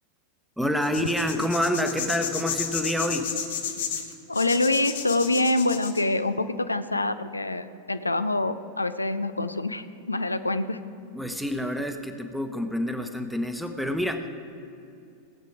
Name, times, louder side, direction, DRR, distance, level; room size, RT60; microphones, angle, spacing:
voice 1, 0.6-3.3 11.1-14.3, equal, ahead, 6 dB, 1.0 m, -27 dB
sound 1, 0.8-6.0, left 8 dB, 55° left, 1.3 m, -32 dB
voice 2, 4.3-10.8, left 2 dB, 80° left, 11 dB, 0.5 m, -26 dB
17.0 x 8.2 x 4.9 m, 2.6 s
figure-of-eight pair, 90°, 0 cm